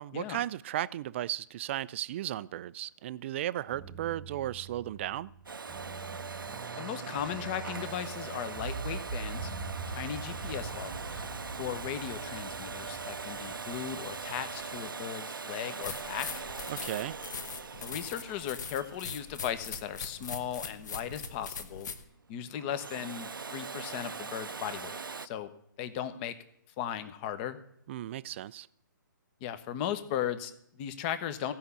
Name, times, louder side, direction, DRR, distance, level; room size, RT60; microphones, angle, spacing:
voice 1, 0.0-5.3 16.7-17.2 27.9-28.7, right 13 dB, 35° right, 0.4 m, -35 dB
sound 1, 3.6-14.9, right 4 dB, 10° right, 1.3 m, -43 dB
Domestic sounds home sounds, 5.5-20.2 22.5-25.3, right 5 dB, 85° right, 0.6 m, -41 dB
voice 2, 6.8-9.5 9.9-11.3 11.6-16.4 17.8-21.9 22.3-25.5 25.8-26.3 26.8-27.6 29.4-31.5, left 10 dB, 30° left, 1.0 m, -37 dB
sound 2, 15.8-22.0, left 5 dB, 60° left, 1.4 m, -41 dB
15.5 x 5.8 x 8.1 m
figure-of-eight pair, 135°, 11 cm